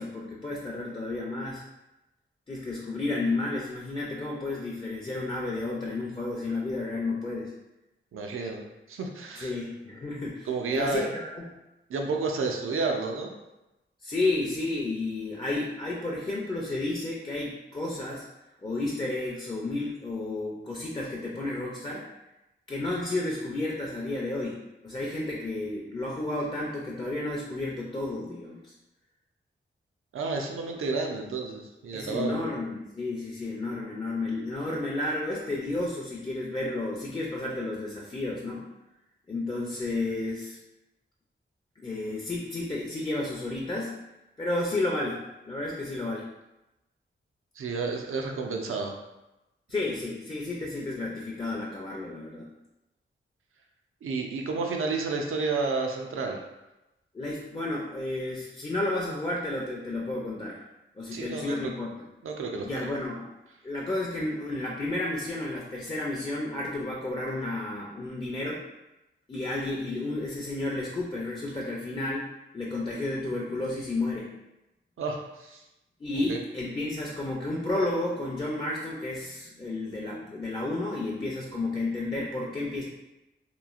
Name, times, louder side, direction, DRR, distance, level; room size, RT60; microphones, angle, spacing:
voice 1, 0.0-1.6 2.5-7.5 9.4-11.5 14.0-18.2 18.6-22.1 22.7-28.7 31.9-38.6 39.3-40.6 41.8-44.0 44.4-45.2 45.4-46.2 49.7-52.5 57.1-60.6 60.9-61.9 62.6-63.3 63.6-68.6 69.3-72.3 72.5-74.3 76.0-82.8, left 2 dB, 25° left, -3 dB, 0.4 m, -32 dB
voice 2, 8.1-9.5 10.5-11.1 11.9-13.3 30.1-32.4 47.6-48.9 54.0-56.4 61.1-61.7 62.2-62.9 75.0-75.6 76.3-76.4, right 4 dB, 85° right, 2 dB, 0.5 m, -31 dB
3.0 x 2.3 x 2.4 m, 0.97 s
wide cardioid pair, 75°, 21 cm